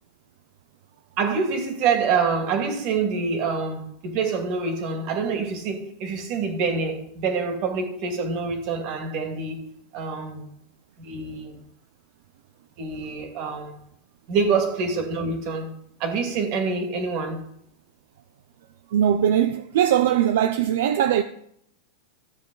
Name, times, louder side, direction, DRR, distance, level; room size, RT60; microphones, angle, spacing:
voice 1, 1.2-10.5 11.0-11.6 12.8-13.7 14.3-15.7 16.0-17.4, right 5 dB, 50° right, 2.3 m, -26 dB
voice 2, 18.9-21.2, right 10 dB, 75° right, 0.5 m, -20 dB
13.5 x 7.2 x 4.0 m
supercardioid pair, 145°, 0 cm